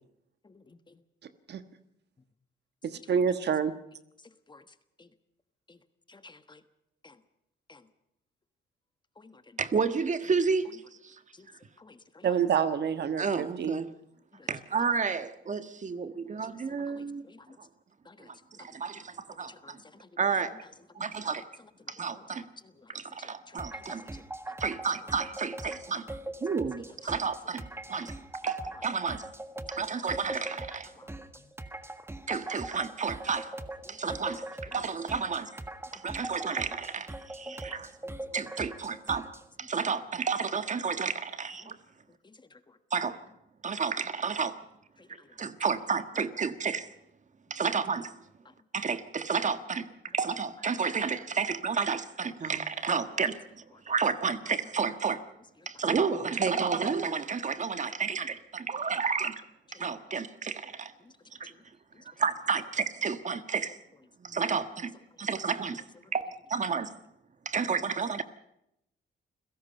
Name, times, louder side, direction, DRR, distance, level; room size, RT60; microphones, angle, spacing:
voice 1, 0.4-1.0 4.5-4.6 5.0-5.1 5.7-5.8 6.1-6.6 7.0-7.2 7.7-7.8 9.2-9.6 11.3-11.5 11.8-12.3 14.3-14.5 16.4-17.5 18.0-18.3 18.6-18.7 19.4-20.1 22.1-22.2 22.6-22.9 23.2-23.8 24.1-24.2 25.7-25.8 29.9-30.1 31.0-31.1 31.3-31.4 33.9-34.4 36.2-36.3 37.5-37.8 38.3-38.7 41.6-41.7 42.2-42.8 45.0-45.3 61.0-61.1 61.5-61.6 61.9-62.0, left 3 dB, 20° left, 11 dB, 1.3 m, -55 dB
voice 2, 2.8-3.7 12.2-13.8, right 7 dB, 60° right, 11 dB, 1.4 m, -27 dB
voice 3, 9.6-10.8 11.0-11.1 13.2-13.9 14.5-17.3 18.6-19.8 20.2-20.6 20.9-21.4 21.9-22.4 22.9-24.0 24.6-26.0 26.4-27.6 27.9-28.1 28.4-29.2 29.7-30.9 32.3-33.5 33.9-35.5 35.9-37.9 38.3-39.3 39.6-41.8 42.9-43.2 43.6-44.6 45.4-46.9 47.5-48.1 48.7-53.4 53.9-55.2 55.6-59.4 59.7-60.9 61.4-61.5 62.2-63.8 64.2-64.9 65.2-65.8 66.1-66.9 67.4-68.2, right 5 dB, 40° right, 11 dB, 1.5 m, -31 dB
sound 1, 23.6-39.5, right 2 dB, 10° right, 1.5 m, -42 dB
29.0 x 17.0 x 5.5 m, 0.81 s
cardioid pair, 90°, 20 cm